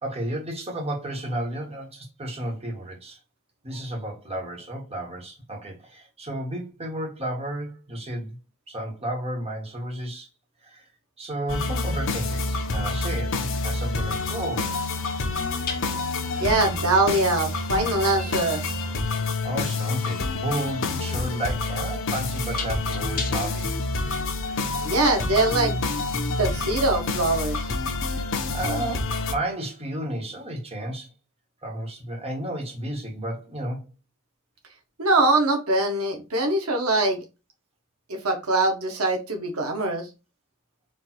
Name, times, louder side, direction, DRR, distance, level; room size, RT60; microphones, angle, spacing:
voice 1, 0.0-3.2 3.6-8.4 8.7-10.3 10.6-10.9 11.2-14.7 19.4-23.7 28.1-31.1 31.6-33.9, right 1 dB, 30° right, 1.6 m, -32 dB
sound 1, 11.5-29.3, left 3 dB, 65° left, 0.9 m, -28 dB
sound 2, 13.3-13.4 15.6-23.7, left 5 dB, 45° left, 1.2 m, -39 dB
voice 2, 16.4-18.6 24.8-25.8 26.4-27.6 35.0-37.2 38.1-40.1, right 2 dB, 80° right, 1.1 m, -23 dB
4.5 x 2.6 x 4.4 m
head